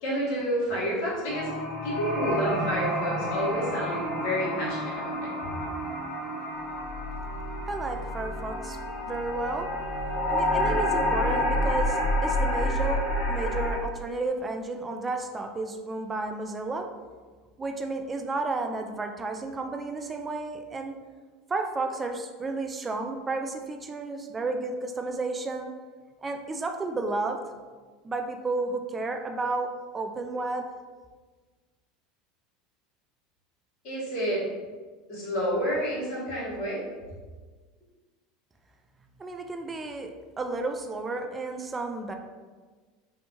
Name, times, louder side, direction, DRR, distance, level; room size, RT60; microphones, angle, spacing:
voice 1, 0.0-1.5 1.8-5.2 33.8-34.4 35.1-36.8, equal, 60° left, -7 dB, 1.2 m, -29 dB
sound 1, 1.3-13.8, left 1 dB, 45° left, 0.8 m, -29 dB
voice 2, 7.7-8.8 9.1-9.7 10.3-13.0 13.3-16.9 17.6-20.9 21.5-25.7 26.2-27.4 28.0-30.7 39.2-42.1, right 3 dB, 25° right, 5 dB, 0.3 m, -32 dB
2.7 x 2.1 x 2.8 m, 1.4 s
hypercardioid pair, 85°, 0 cm